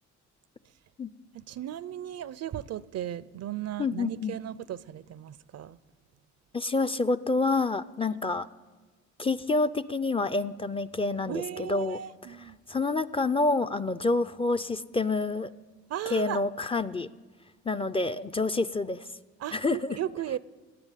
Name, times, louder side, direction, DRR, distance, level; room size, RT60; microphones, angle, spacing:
voice 1, 1.3-5.8 11.3-12.6 15.9-16.4 19.4-20.4, right 11 dB, 55° right, 0.5 m, -36 dB
voice 2, 3.8-4.4 6.5-8.5 9.2-12.0 12.7-15.5 16.1-17.1 17.7-19.1 19.5-20.0, left 3 dB, 20° left, 0.4 m, -28 dB
13.5 x 8.9 x 9.9 m
cardioid pair, 90°, 30 cm